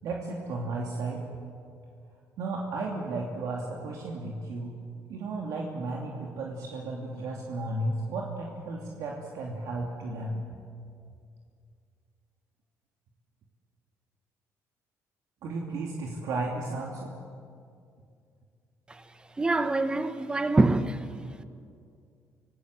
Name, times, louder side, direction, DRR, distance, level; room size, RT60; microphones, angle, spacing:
voice 1, 0.0-1.2 2.4-4.8 5.1-10.4 15.4-17.1, right 2 dB, 75° right, 2.9 m, -34 dB
voice 2, 19.4-21.1, right 2 dB, 15° right, 1.2 m, -25 dB
26.5 x 18.5 x 7.9 m
cardioid pair, 125°, 6 cm